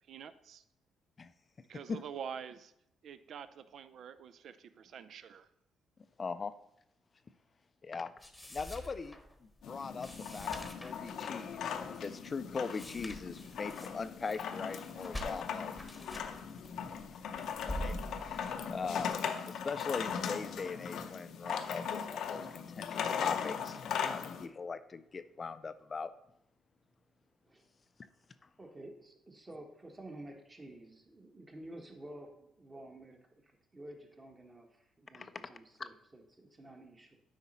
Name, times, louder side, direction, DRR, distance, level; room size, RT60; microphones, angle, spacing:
voice 1, 0.1-0.6 1.7-2.7 3.0-5.5, right 7 dB, 65° right, 13 dB, 0.4 m, -46 dB
voice 2, 6.2-6.5 7.8-8.1 8.5-9.2 9.7-10.5 10.8-15.7 17.6-18.0 18.2-19.2 19.4-26.1 35.1-35.3 35.8-35.9, left 4 dB, 35° left, 12 dB, 0.4 m, -40 dB
sound 1, 8.2-19.1, equal, 10° left, 1.1 m, -46 dB
sound 2, 9.6-24.5, left 7 dB, 75° left, 0.6 m, -39 dB
voice 3, 28.6-37.2, right 1 dB, 25° right, 3 dB, 1.4 m, -51 dB
8.2 x 5.1 x 4.2 m, 0.78 s
cardioid pair, 90°, 0 cm